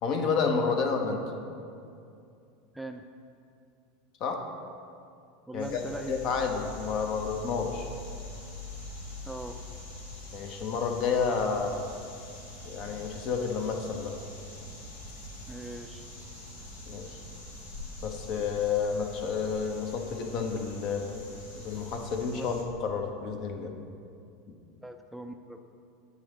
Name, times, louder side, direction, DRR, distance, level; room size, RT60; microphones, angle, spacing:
voice 1, 0.0-1.3 4.2-4.5 5.5-7.9 10.3-11.8 12.6-14.2 16.9-17.2 18.0-21.3 21.6-23.7 24.5-24.6, left 5 dB, 50° left, 4 dB, 0.7 m, -30 dB
voice 2, 5.5-6.2 9.3-9.6 15.5-16.1 22.4-22.5 24.8-25.6, right 1 dB, 5° right, 5 dB, 0.3 m, -40 dB
sound 1, 5.6-22.6, left 2 dB, 80° left, 1.0 m, -44 dB
9.5 x 3.8 x 3.1 m, 2.5 s
hypercardioid pair, 80°, 0 cm